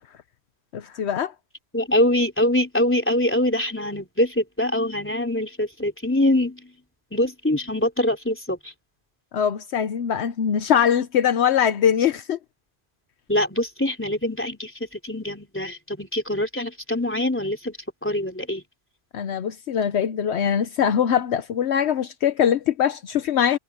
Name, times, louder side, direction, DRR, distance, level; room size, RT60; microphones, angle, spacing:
voice 1, 0.7-1.3 9.3-12.4 19.1-23.6, left 8 dB, 75° left, 1.0 m, -22 dB
voice 2, 1.7-6.7 7.1-8.7 13.3-17.8 18.0-18.6, left 1 dB, 10° left, 3.6 m, -24 dB
omnidirectional pair, 1.1 m